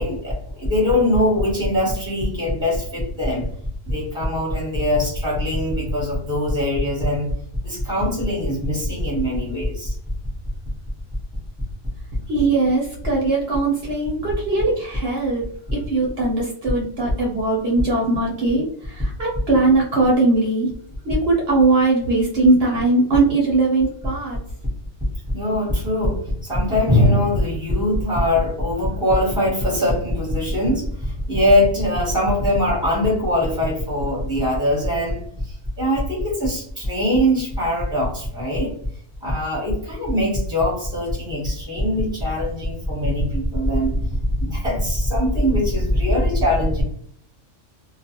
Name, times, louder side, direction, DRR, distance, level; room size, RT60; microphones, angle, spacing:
voice 1, 0.0-3.4 3.9-7.3 7.6-9.9 25.3-35.3 35.8-38.7 39.2-44.0 44.4-46.8, left 1 dB, 5° right, -3 dB, 0.9 m, -21 dB
voice 2, 12.3-15.4 15.7-20.7 21.0-24.4, right 3 dB, 60° right, -2 dB, 0.9 m, -20 dB
2.4 x 2.3 x 2.8 m, 0.63 s
omnidirectional pair, 1.3 m